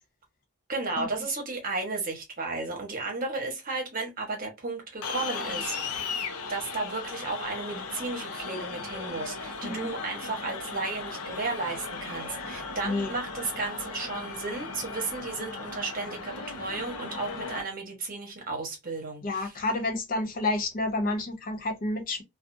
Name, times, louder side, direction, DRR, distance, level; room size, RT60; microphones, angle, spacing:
voice 1, 0.7-6.2 6.5-19.5, right 3 dB, 40° right, 0.9 m, -34 dB
sound 1, 5.0-17.6, left 4 dB, 90° left, 0.6 m, -37 dB
voice 2, 19.2-22.2, left 2 dB, 40° left, 0.5 m, -29 dB
2.4 x 2.3 x 2.5 m
head